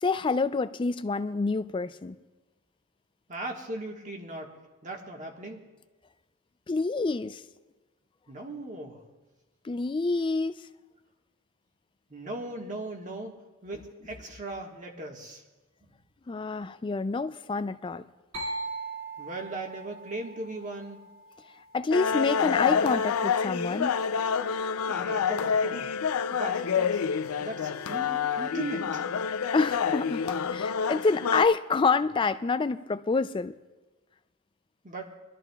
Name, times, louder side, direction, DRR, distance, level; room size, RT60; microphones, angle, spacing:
voice 1, 0.0-2.2 6.7-7.4 9.6-10.6 16.3-18.0 21.7-24.0 29.5-33.5, left 4 dB, 25° left, 12 dB, 0.3 m, -27 dB
voice 2, 3.3-4.5 4.8-5.7 8.3-9.0 12.1-15.4 15.8-15.9 19.2-21.0 24.9-25.9 26.3-27.1 27.4-29.1 34.8-35.1, right 2 dB, 35° right, 1 dB, 1.4 m, -38 dB
sound 1, 18.3-22.0, right 3 dB, 65° right, 2.4 m, -40 dB
sound 2, 21.9-31.4, left 6 dB, 90° left, 0.4 m, -28 dB
23.0 x 12.5 x 2.3 m, 1.2 s
head